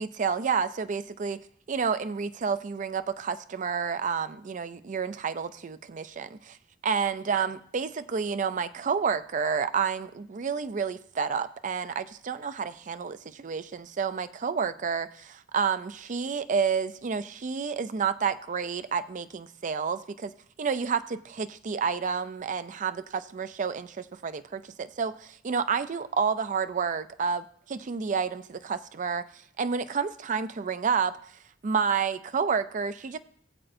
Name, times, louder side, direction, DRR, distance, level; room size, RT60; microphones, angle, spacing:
voice 1, 0.0-1.4 1.7-6.6 6.8-20.3 20.6-23.0 23.3-31.1 31.6-33.2, right 6 dB, 45° right, 12 dB, 0.4 m, -30 dB
19.0 x 7.7 x 2.6 m, 0.63 s
head